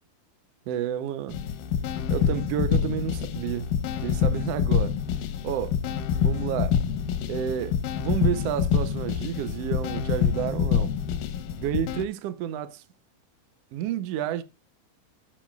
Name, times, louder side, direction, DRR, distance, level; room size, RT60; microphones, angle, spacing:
voice 1, 0.7-1.4 2.1-5.0 5.4-5.8 6.2-6.8 7.3-10.9 11.6-12.8 13.7-14.4, right 10 dB, 90° right, 1.3 m, -30 dB
sound 1, 1.3-12.0, left 8 dB, 90° left, 2.5 m, -26 dB
16.5 x 6.1 x 2.3 m
omnidirectional pair, 3.9 m